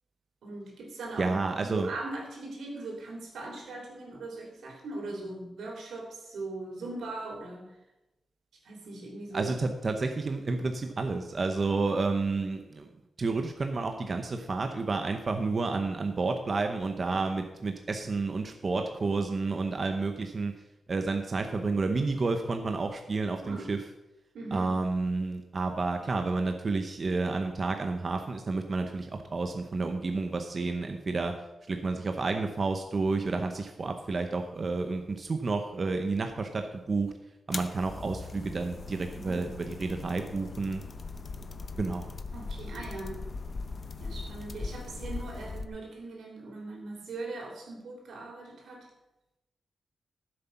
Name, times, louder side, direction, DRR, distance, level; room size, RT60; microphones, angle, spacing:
voice 1, 0.4-7.8 8.6-9.5 17.1-17.2 23.4-23.7 24.3-24.7 39.2-39.5 42.3-43.2 44.0-48.9, right 2 dB, 85° right, 0 dB, 3.6 m, -40 dB
voice 2, 1.2-1.9 9.3-12.9 13.2-20.5 20.9-23.8 24.5-31.3 31.7-37.1 37.5-40.8 41.8-42.1, right 3 dB, 35° right, 5 dB, 0.8 m, -30 dB
sound 1, 37.5-45.7, left 3 dB, 35° left, 0.7 m, -40 dB
14.0 x 7.8 x 5.8 m, 0.96 s
wide cardioid pair, 160°, 0 cm